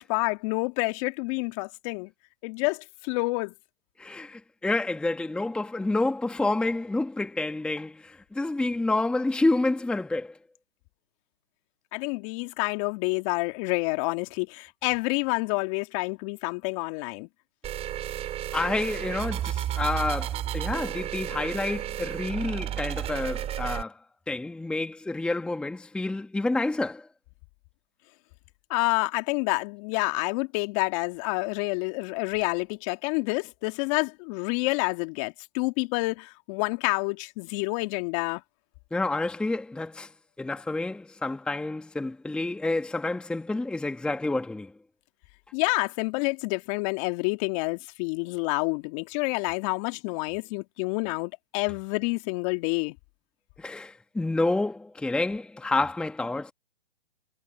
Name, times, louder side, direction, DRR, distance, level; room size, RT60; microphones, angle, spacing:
voice 1, 0.0-2.1 2.4-3.5 11.9-17.3 28.7-38.4 45.5-52.9, left 29 dB, 30° left, 2.4 m, -28 dB
voice 2, 4.0-10.3 18.5-24.0 24.3-27.1 38.9-40.1 40.4-44.7 53.6-56.5, left 2 dB, 5° left, 1.4 m, -29 dB
sound 1, 17.6-23.8, right 11 dB, 20° right, 5.8 m, -32 dB
hypercardioid pair, 135°, 32 cm